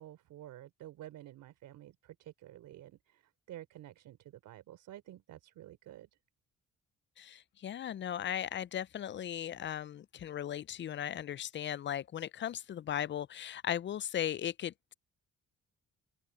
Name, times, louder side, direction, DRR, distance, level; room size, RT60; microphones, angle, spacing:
voice 1, 0.0-6.1, right 13 dB, 85° right, 3.4 m, -51 dB
voice 2, 7.2-14.9, left 10 dB, 40° left, 0.4 m, -37 dB
open air
cardioid pair, 90°, 30 cm